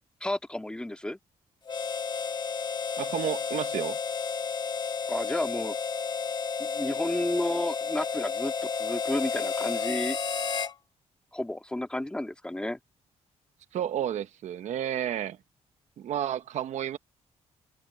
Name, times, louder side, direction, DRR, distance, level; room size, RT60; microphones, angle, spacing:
voice 1, 0.2-1.2 5.1-5.8 6.6-10.2 11.3-12.8, left 1 dB, 10° left, 1.9 m, -32 dB
Harmonica, 1.7-10.8, left 6 dB, 35° left, 1.8 m, -31 dB
voice 2, 3.0-4.0 13.7-15.4 16.0-17.0, right 10 dB, 75° right, 1.0 m, -31 dB
cardioid pair, 135°, 12 cm